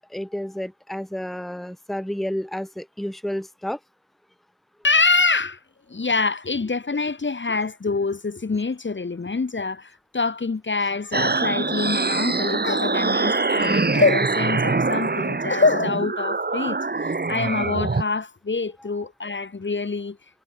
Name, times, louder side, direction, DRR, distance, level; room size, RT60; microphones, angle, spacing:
voice 1, 0.1-3.8, equal, ahead, 1.5 m, -30 dB
voice 2, 4.8-5.6 5.9-20.2, left 4 dB, 35° left, 1.5 m, -25 dB
sound 1, 11.1-18.0, right 3 dB, 30° right, 1.8 m, -24 dB
wide cardioid pair, 110°, 31 cm